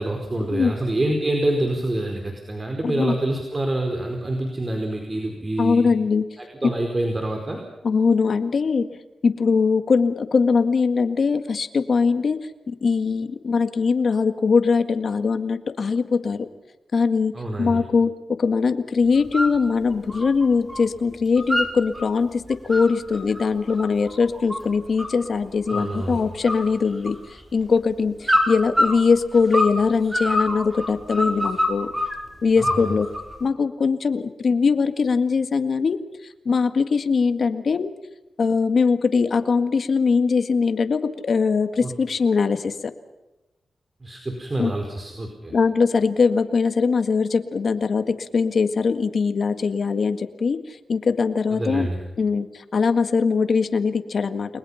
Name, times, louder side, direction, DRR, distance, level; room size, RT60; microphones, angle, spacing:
voice 1, 0.0-5.9 6.4-7.6 17.3-17.8 25.7-26.2 32.6-32.9 41.8-41.9 44.0-45.5 51.5-52.0, right 1 dB, 30° right, 3 dB, 4.8 m, -26 dB
voice 2, 2.8-3.2 5.6-6.2 7.8-8.9 9.2-12.4 12.7-16.5 16.9-17.3 17.6-18.1 18.4-27.2 27.5-31.9 32.4-33.1 33.4-36.0 36.5-37.9 38.4-42.9 44.6-44.7 45.5-50.6 50.9-51.9 52.2-54.6, left 5 dB, 60° left, 9 dB, 1.8 m, -21 dB
sound 1, 19.1-19.6 19.9-20.9 21.1-22.1 22.5-25.3 25.7-26.1 26.5-27.4 28.2-29.8 30.1-32.2 32.6-33.4, left 1 dB, 10° right, 5.6 m, -25 dB
29.5 x 21.5 x 5.8 m, 1.0 s
cardioid pair, 80°, 0 cm